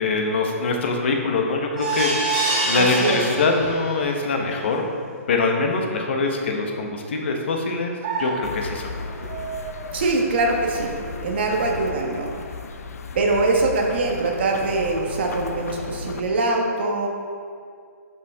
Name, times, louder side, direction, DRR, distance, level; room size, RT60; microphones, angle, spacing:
voice 1, 0.0-4.9 5.3-8.9, left 3 dB, 50° left, 2 dB, 1.0 m, -23 dB
sound 1, 1.8-4.0 4.5-4.6 4.9-5.0, right 2 dB, 5° right, 2.0 m, -25 dB
voice 2, 2.7-3.2 9.9-10.9 11.2-12.3 13.1-17.1, right 2 dB, 45° right, 0 dB, 1.3 m, -23 dB
sound 2, 8.0-16.0, right 4 dB, 25° right, 0.6 m, -37 dB
sound 3, 8.4-16.2, left 4 dB, 75° left, 0.6 m, -35 dB
11.0 x 5.7 x 3.5 m, 2.2 s
hypercardioid pair, 175°, 8 cm